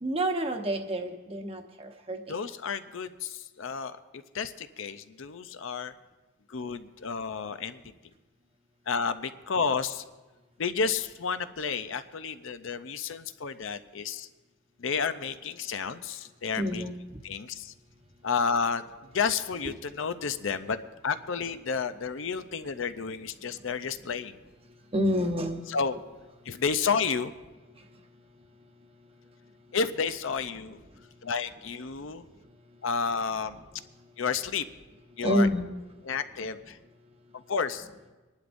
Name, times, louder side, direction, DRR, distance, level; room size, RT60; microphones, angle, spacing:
voice 1, 0.0-2.4 16.6-16.9 24.9-25.6 35.2-35.6, equal, 25° right, 4 dB, 1.0 m, -28 dB
voice 2, 2.3-4.0 4.3-5.9 6.5-7.8 8.9-10.0 10.6-14.3 14.8-16.8 17.2-17.7 18.2-18.8 19.1-20.8 21.0-24.4 25.7-26.0 26.5-27.3 29.7-30.8 31.2-32.2 32.8-33.6 34.2-34.7 35.2-35.5 36.1-36.8 37.3-37.9, left 5 dB, 60° left, 11 dB, 0.6 m, -31 dB
25.5 x 11.5 x 2.6 m, 1.2 s
head